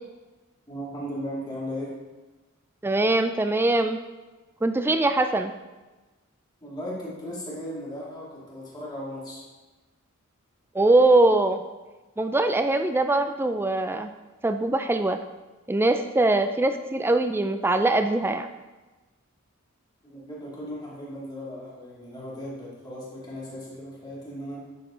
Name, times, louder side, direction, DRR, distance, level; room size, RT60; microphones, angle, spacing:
voice 1, 0.7-1.9 6.6-9.4 20.0-24.6, equal, 20° left, -6 dB, 2.6 m, -36 dB
voice 2, 2.8-4.0 4.6-5.5 10.7-11.6 12.2-14.1 14.4-15.2 15.7-18.5, right 2 dB, 10° right, 8 dB, 0.3 m, -22 dB
9.9 x 6.8 x 3.8 m, 1.2 s
head